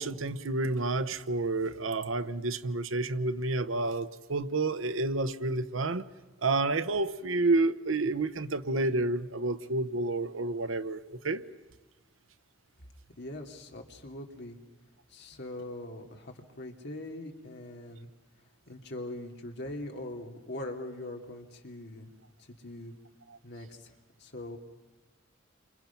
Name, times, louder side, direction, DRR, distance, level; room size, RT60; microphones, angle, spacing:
voice 1, 0.0-6.0 6.4-11.4, right 2 dB, 85° right, 12 dB, 1.0 m, -29 dB
voice 2, 13.2-14.6 15.1-18.1 18.7-22.1 22.4-22.9 23.4-24.6, left 1 dB, 60° left, 2 dB, 2.7 m, -42 dB
29.0 x 26.0 x 5.9 m, 1.1 s
head